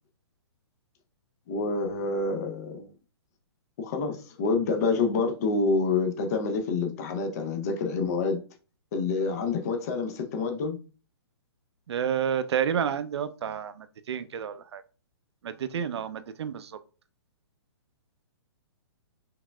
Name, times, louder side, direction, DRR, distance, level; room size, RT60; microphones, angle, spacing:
voice 1, 1.5-2.9 3.8-8.4 8.9-10.8, left 4 dB, 35° left, 0.6 m, -27 dB
voice 2, 11.9-14.8 15.4-16.8, right 8 dB, 75° right, 0.5 m, -30 dB
4.8 x 3.4 x 2.2 m
hypercardioid pair, 165°, 14 cm